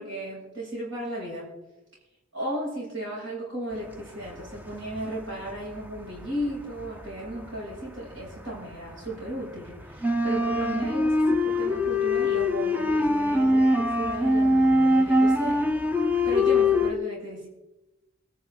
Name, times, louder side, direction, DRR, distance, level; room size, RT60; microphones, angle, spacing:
voice 1, 0.0-1.5 2.3-15.6 16.2-17.5, right 1 dB, 70° right, -5 dB, 7.7 m, -35 dB
sound 1, 4.2-5.2 5.5-8.4 8.7-16.9, left 1 dB, 10° right, 0.7 m, -23 dB
28.0 x 10.5 x 4.0 m, 1.0 s
head